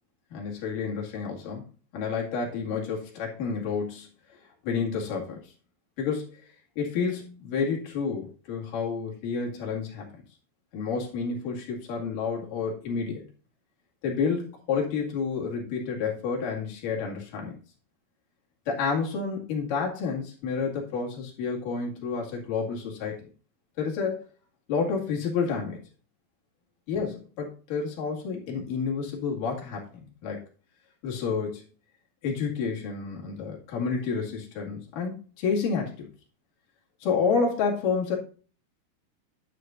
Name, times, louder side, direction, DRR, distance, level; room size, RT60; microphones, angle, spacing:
voice 1, 0.3-4.1 4.6-5.5 6.0-6.4 6.8-10.2 10.7-13.2 14.0-17.6 18.7-23.3 23.8-24.2 24.7-25.8 26.9-30.4 31.0-31.6 32.2-36.1 37.0-38.2, left 5 dB, 60° left, -2 dB, 3.5 m, -30 dB
9.8 x 8.7 x 2.6 m, 0.38 s
omnidirectional pair, 4.5 m